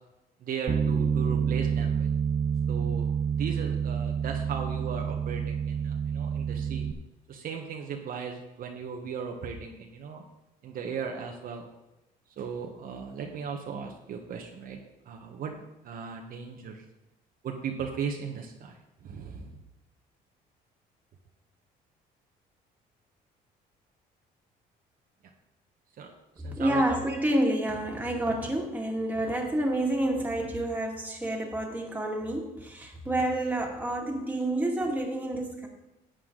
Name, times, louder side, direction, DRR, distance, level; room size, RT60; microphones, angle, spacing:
voice 1, 0.4-2.1 2.7-3.1 3.3-6.9 7.3-10.2 10.6-11.6 12.4-14.8 15.1-16.8 17.4-19.5 26.0-26.1 26.4-26.8, right 6 dB, 60° right, 2 dB, 1.3 m, -37 dB
Bass guitar, 0.7-6.9, right 7 dB, 30° right, 0.5 m, -28 dB
voice 2, 26.4-35.7, right 1 dB, 10° right, -1 dB, 2.3 m, -29 dB
11.5 x 8.3 x 3.9 m, 0.97 s
cardioid pair, 110°, 17 cm